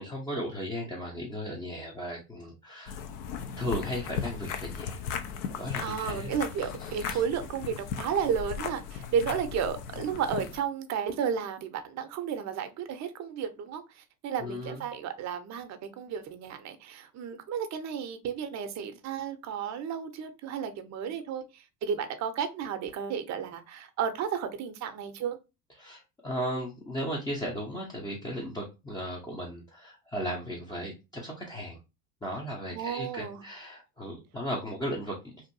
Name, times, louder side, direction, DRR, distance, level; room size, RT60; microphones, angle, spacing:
voice 1, 0.0-3.0 3.6-5.0 5.6-6.3 6.6-7.2 14.4-14.8 25.8-31.8 32.2-35.3, equal, 10° left, 0.5 m, -36 dB
sound 1, 2.9-10.6, left 7 dB, 65° left, 0.6 m, -37 dB
voice 2, 5.8-25.4 32.7-33.4, right 7 dB, 35° right, 0.6 m, -33 dB
2.6 x 2.5 x 2.6 m
hypercardioid pair, 75°, 48 cm